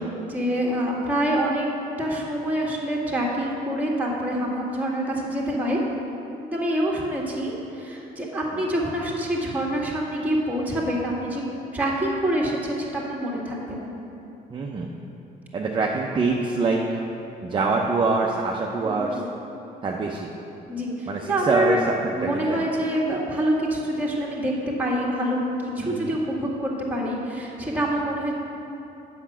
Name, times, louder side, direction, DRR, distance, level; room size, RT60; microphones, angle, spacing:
voice 1, 0.0-1.7 2.0-5.8 6.4-11.4 11.7-13.9 18.8-19.3 20.7-21.8 22.1-28.3, right 1 dB, 10° right, -4 dB, 1.9 m, -26 dB
voice 2, 14.5-14.9 15.5-17.1 17.4-19.2 19.8-20.3 21.1-21.8 22.2-22.6 25.8-26.1, right 4 dB, 30° right, -1 dB, 0.7 m, -25 dB
8.1 x 5.9 x 7.3 m, 2.9 s
cardioid pair, 110°, 17 cm